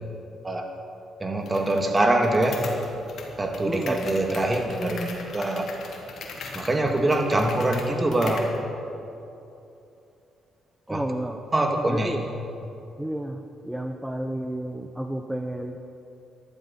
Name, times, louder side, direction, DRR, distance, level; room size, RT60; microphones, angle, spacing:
voice 1, 1.2-2.6 3.4-5.7 6.5-8.5 10.9-11.1 11.5-12.2, right 1 dB, 25° right, 4 dB, 1.8 m, -24 dB
sound 1, 1.5-8.6, left 4 dB, 65° left, 2.1 m, -40 dB
voice 2, 3.6-4.0 10.9-11.4 11.9-12.2 13.0-15.8, right 1 dB, 5° right, 4 dB, 0.7 m, -31 dB
14.5 x 12.0 x 5.6 m, 2.8 s
cardioid pair, 90°, 0 cm